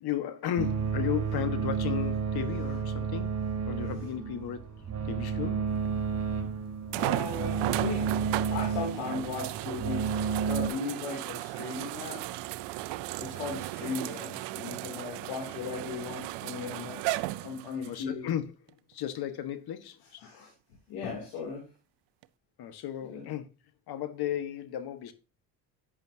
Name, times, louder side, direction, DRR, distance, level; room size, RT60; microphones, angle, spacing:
voice 1, 0.0-5.7 17.8-18.4 18.9-20.2 22.6-23.5 23.9-25.1, left 11 dB, 60° left, 1.6 m, -35 dB
sound 1, 0.6-10.7, right 6 dB, 40° right, 3.8 m, -31 dB
sound 2, 5.8-5.9 6.9-18.0 18.7-18.8 22.2-22.3, right 17 dB, 75° right, 0.8 m, -35 dB
voice 2, 6.9-8.2 8.5-10.1 10.5-12.2 13.2-17.0 17.4-18.3 20.2-20.5 20.9-21.6 23.0-23.3, left 4 dB, 85° left, 3.2 m, -37 dB
11.0 x 8.7 x 2.8 m
supercardioid pair, 80°, 42 cm